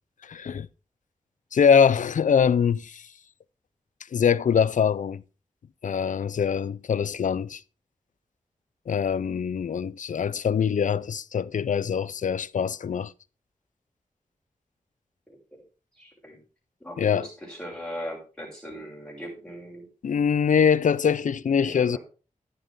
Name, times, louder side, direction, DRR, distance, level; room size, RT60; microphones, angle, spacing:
voice 1, 0.3-0.7 1.5-3.0 4.1-5.2 5.8-7.6 8.9-13.1 17.0-17.3 20.0-22.0, left 7 dB, 70° left, 0.5 m, -23 dB
voice 2, 15.3-15.6 16.0-16.4 16.8-19.9 21.6-22.0, equal, 5° left, 6.5 m, -39 dB
11.0 x 9.6 x 3.7 m
wide cardioid pair, 90°, 14 cm